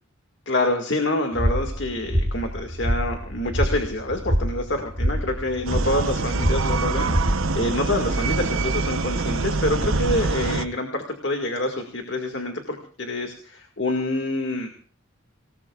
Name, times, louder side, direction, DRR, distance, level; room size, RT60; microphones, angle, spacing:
voice 1, 0.5-14.7, left 1 dB, 55° left, 4 dB, 2.0 m, -27 dB
sound 1, 1.3-7.7, equal, 35° right, 3.6 m, -26 dB
sound 2, 5.7-10.7, right 3 dB, 75° right, 0.9 m, -25 dB
26.0 x 19.0 x 2.4 m, 0.42 s
head